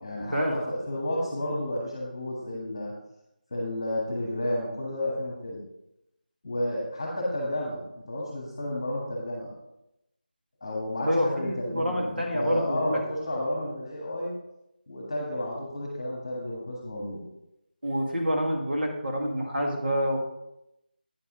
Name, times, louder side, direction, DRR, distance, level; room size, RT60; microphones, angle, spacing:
voice 1, 0.0-2.9 3.5-5.6 6.4-7.8 8.1-9.5 10.6-14.3 14.9-17.2, left 1 dB, 15° left, -3 dB, 1.4 m, -31 dB
voice 2, 11.0-13.0 17.8-20.2, equal, 80° right, 0 dB, 2.1 m, -27 dB
9.1 x 6.7 x 3.8 m, 0.85 s
figure-of-eight pair, 180°, 5 cm